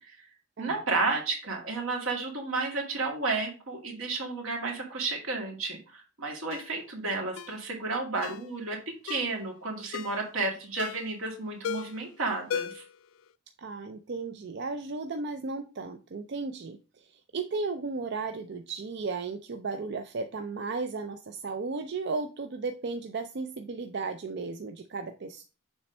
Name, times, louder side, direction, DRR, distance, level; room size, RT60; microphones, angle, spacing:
voice 1, 0.6-12.8, right 3 dB, 85° right, 1 dB, 2.3 m, -32 dB
Ringtone, 6.5-6.7 7.4-7.6 8.2-8.5 9.1-9.4 9.9-10.2 10.8-11.2 11.6-12.0 12.5-13.0 13.3-13.4, left 7 dB, 90° left, 0.4 m, -36 dB
voice 2, 13.6-25.4, right 4 dB, 55° right, 7 dB, 0.5 m, -35 dB
7.0 x 3.3 x 5.3 m, 0.33 s
head